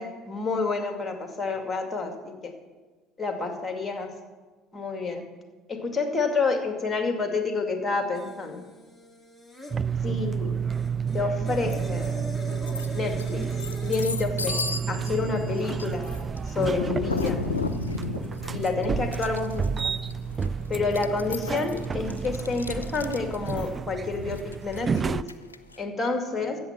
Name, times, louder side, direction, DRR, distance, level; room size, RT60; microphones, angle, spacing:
voice 1, 0.0-2.5 3.2-4.1 4.7-5.2 5.7-8.6 10.0-10.5 11.1-12.1 12.9-13.4 13.8-14.6 14.9-16.0 16.5-17.4 18.5-19.9 20.7-25.1 25.8-26.6, left 4 dB, 20° left, 5 dB, 2.3 m, -29 dB
sound 1, 8.1-9.8 10.7-14.1, left 1 dB, 5° left, 2.3 m, -41 dB
sound 2, 9.7-25.2, right 6 dB, 30° right, 0.4 m, -30 dB
sound 3, 11.7-12.1 12.5-25.8, left 4 dB, 85° left, 0.5 m, -35 dB
14.0 x 8.2 x 5.9 m, 1.3 s
figure-of-eight pair, 60°, 0 cm